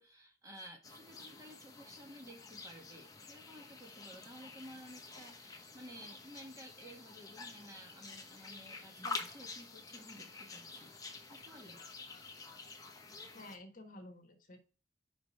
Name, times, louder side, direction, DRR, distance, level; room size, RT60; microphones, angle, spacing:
voice 1, 0.0-10.9 11.3-11.8, equal, 20° right, 2 dB, 1.6 m, -54 dB
sound 1, 0.8-13.6, left 4 dB, 20° left, 1.1 m, -48 dB
voice 2, 13.3-14.6, left 2 dB, 50° left, 5 dB, 1.4 m, -51 dB
5.2 x 5.1 x 6.0 m, 0.37 s
head